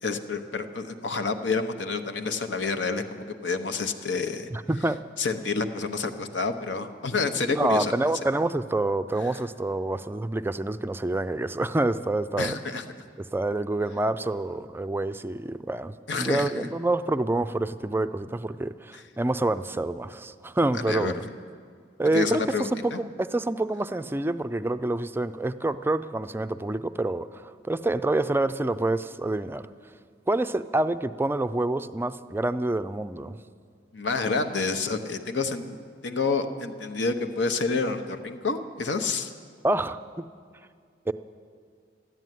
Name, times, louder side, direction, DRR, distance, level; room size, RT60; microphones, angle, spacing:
voice 1, 0.0-4.5 5.2-8.1 12.4-12.8 16.1-16.7 18.9-19.0 20.7-21.1 22.1-23.0 33.9-35.8 36.0-39.3, left 4 dB, 80° left, 7 dB, 1.0 m, -28 dB
voice 2, 4.5-5.0 7.5-12.5 13.3-21.2 22.0-29.7 30.3-33.4 39.6-40.0 41.1-41.2, right 2 dB, 10° right, 11 dB, 0.4 m, -27 dB
14.0 x 11.0 x 9.2 m, 2.2 s
head